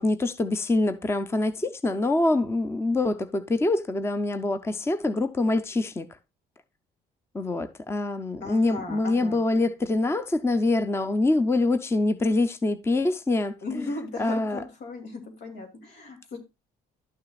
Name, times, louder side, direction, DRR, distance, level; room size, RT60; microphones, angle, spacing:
voice 1, 0.0-6.1 7.3-13.9 14.2-14.6, left 2 dB, 15° left, 0.6 m, -25 dB
voice 2, 8.4-9.4 13.6-16.4, left 3 dB, 80° left, 2.6 m, -37 dB
12.0 x 6.6 x 2.4 m
cardioid pair, 110°, 17 cm